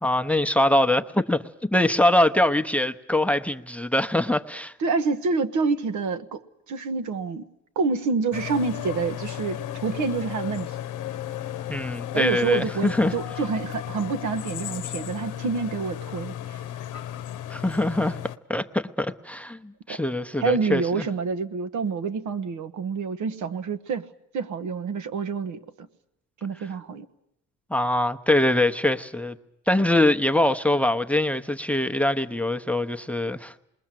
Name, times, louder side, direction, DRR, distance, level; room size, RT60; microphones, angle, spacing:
voice 1, 0.0-1.4 1.7-4.7 11.7-13.1 17.5-18.2 18.5-21.1 27.7-29.4 29.7-33.5, left 1 dB, 5° left, 0.8 m, -23 dB
voice 2, 4.8-7.5 7.7-10.7 12.1-16.6 19.9-20.0 20.4-24.0 24.3-25.9 26.4-27.1, right 5 dB, 70° right, 1.2 m, -27 dB
sound 1, 8.3-18.4, left 11 dB, 80° left, 0.9 m, -34 dB
27.0 x 21.0 x 7.6 m
cardioid pair, 90°, 30 cm